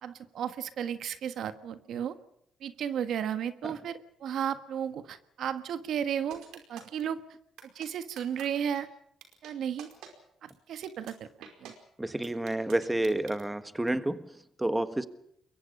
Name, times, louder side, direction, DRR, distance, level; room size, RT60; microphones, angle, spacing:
voice 1, 0.0-2.2 2.6-7.2 7.7-8.9 9.4-9.9 10.4-11.1 11.6-11.7, right 8 dB, 70° right, 11 dB, 1.5 m, -34 dB
sound 1, 6.3-7.0 7.6-7.9 8.2-8.4 8.7-8.8 9.2-9.5 9.8-10.1 10.5-10.6 10.8-11.1 11.4-11.7 12.2-13.4, right 9 dB, 85° right, 4.9 m, -47 dB
voice 2, 12.0-15.1, right 1 dB, 10° right, 12 dB, 1.5 m, -30 dB
28.0 x 23.0 x 5.4 m, 0.75 s
cardioid pair, 90°, 0 cm